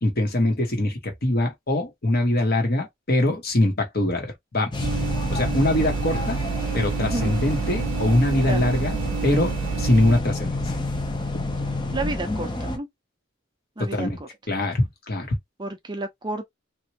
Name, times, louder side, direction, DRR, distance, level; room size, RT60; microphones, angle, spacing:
voice 1, 0.0-4.9 5.3-6.4 6.7-10.7 11.3-11.5 13.8-14.2 14.5-15.4, left 1 dB, 50° left, 1.3 m, -23 dB
sound 1, 4.7-12.8, left 2 dB, 25° left, 0.6 m, -29 dB
sound 2, 4.8-10.2, right 7 dB, 85° right, 0.5 m, -29 dB
voice 2, 7.0-7.3 8.4-8.6 11.9-12.9 13.8-14.3 15.6-16.5, right 2 dB, 20° right, 0.5 m, -31 dB
3.0 x 2.6 x 2.9 m
head